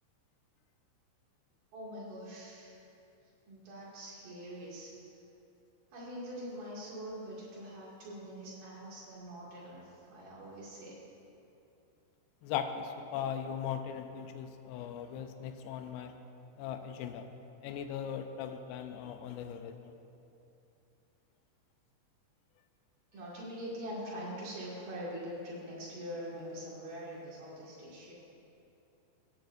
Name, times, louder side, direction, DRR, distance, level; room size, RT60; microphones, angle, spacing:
voice 1, 1.7-2.8 3.5-4.9 5.9-11.0 23.1-28.1, equal, 55° right, -7 dB, 3.5 m, -43 dB
voice 2, 12.4-16.1 16.6-17.3 17.6-19.9, left 8 dB, 85° left, 7 dB, 2.5 m, -39 dB
17.0 x 9.2 x 2.6 m, 2.8 s
omnidirectional pair, 5.3 m